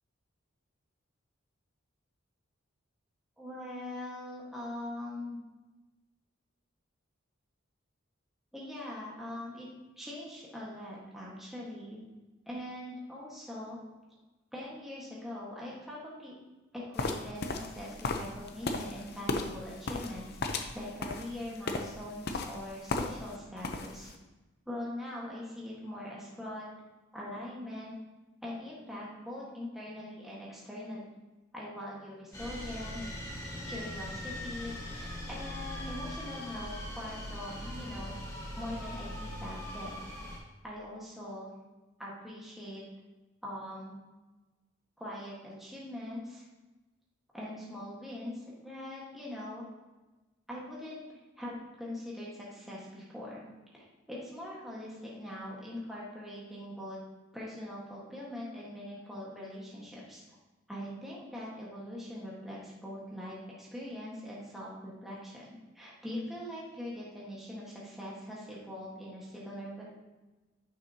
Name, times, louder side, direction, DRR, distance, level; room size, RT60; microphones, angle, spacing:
voice 1, 3.4-5.4 8.5-9.7 10.0-12.0 12.5-13.8 14.5-16.3 16.7-24.1 24.6-26.7 27.1-27.9 28.4-31.0 31.5-33.2 33.7-38.2 38.6-40.1 40.6-41.5 42.0-42.8 43.4-44.0 45.0-46.4 47.3-49.7 50.5-53.4 53.7-57.0 57.3-60.2 60.7-69.8, left 1 dB, ahead, -6 dB, 1.5 m, -42 dB
sound 1, 17.0-23.4 23.6-24.1, left 3 dB, 50° left, 0.7 m, -35 dB
sound 2, 32.3-40.4, left 1 dB, 15° left, 1.4 m, -40 dB
10.0 x 6.1 x 2.8 m, 1.1 s
head